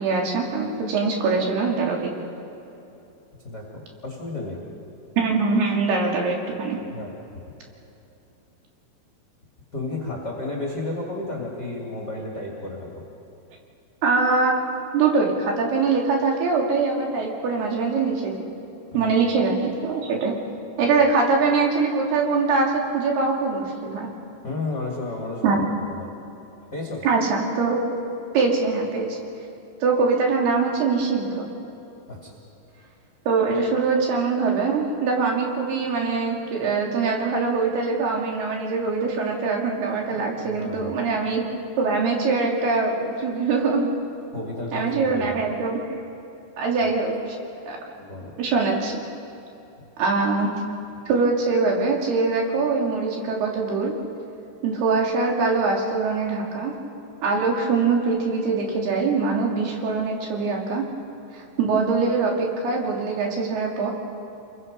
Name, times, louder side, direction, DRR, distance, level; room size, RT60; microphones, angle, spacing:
voice 1, 0.0-2.1 5.2-6.8 14.0-14.6 14.9-18.5 18.9-20.3 20.8-24.1 25.4-25.6 27.0-27.8 28.3-29.2 29.8-31.5 33.3-41.4 41.8-43.9 44.7-45.8 46.6-47.2 47.7-47.8 48.4-49.0 50.0-50.5 51.1-53.9 54.6-56.7 57.2-60.8 61.3-63.9, right 4 dB, 60° right, 0 dB, 4.6 m, -23 dB
voice 2, 3.4-4.6 6.9-7.1 9.7-13.0 18.9-19.2 24.4-25.6 25.9-26.1 26.7-27.1 32.1-32.3 40.4-40.9 44.3-45.4 48.0-48.3, left 2 dB, 30° left, -1 dB, 2.4 m, -32 dB
29.5 x 22.5 x 5.5 m, 3.0 s
omnidirectional pair, 5.4 m